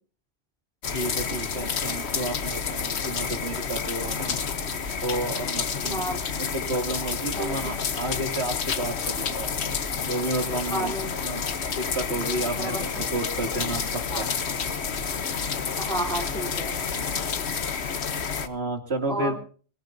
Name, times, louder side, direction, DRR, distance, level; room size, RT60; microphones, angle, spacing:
sound 1, 0.8-18.5, left 6 dB, 75° left, 1.3 m, -29 dB
voice 1, 0.9-4.4 5.0-9.5 10.0-10.9 11.2-11.4 11.8-14.3 17.2-17.4 18.4-19.4, right 2 dB, 75° right, 4 dB, 2.8 m, -31 dB
voice 2, 5.8-6.2 7.4-7.7 10.7-11.5 12.6-13.0 14.1-14.3 15.8-16.8 19.1-19.4, right 1 dB, 5° left, 2 dB, 3.5 m, -32 dB
23.0 x 18.0 x 2.7 m, 0.41 s
omnidirectional pair, 1.1 m